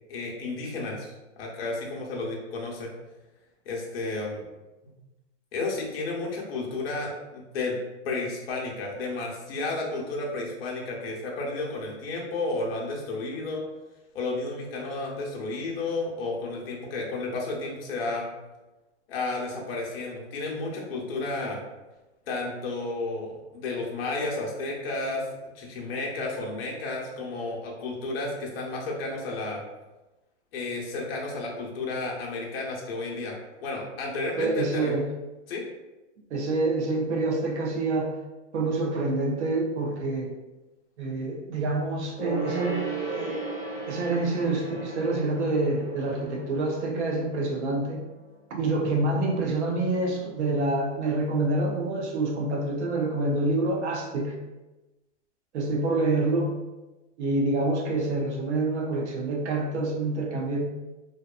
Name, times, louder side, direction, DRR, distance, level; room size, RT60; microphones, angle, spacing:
voice 1, 0.1-2.9 3.6-4.4 4.8-4.9 5.5-7.8 8.0-13.6 14.1-18.3 19.1-21.6 22.3-25.3 25.5-29.6 30.5-34.9 35.5-35.6, left 3 dB, 50° left, -2 dB, 0.7 m, -32 dB
voice 2, 34.4-35.0 36.3-38.2 38.5-40.3 41.0-43.4 43.9-48.0 48.5-54.4 55.5-56.5 57.2-60.6, right 2 dB, 65° right, 1 dB, 0.7 m, -27 dB
Gong, 42.2-48.1 48.3-48.4, right 3 dB, 15° left, 0.5 m, -36 dB
2.7 x 2.2 x 2.3 m, 1.1 s
supercardioid pair, 170°, 37 cm